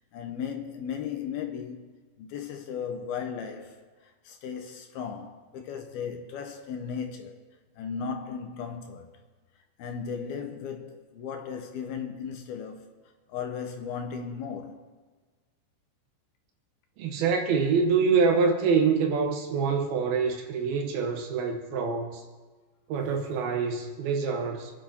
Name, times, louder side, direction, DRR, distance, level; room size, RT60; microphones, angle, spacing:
voice 1, 0.1-1.9 2.2-7.5 7.8-9.1 9.8-12.9 13.3-14.9, left 6 dB, 70° left, 2.8 m, -36 dB
voice 2, 17.0-22.2 22.9-24.7, right 5 dB, 70° right, 2.7 m, -25 dB
27.5 x 10.5 x 4.5 m
omnidirectional pair, 5.0 m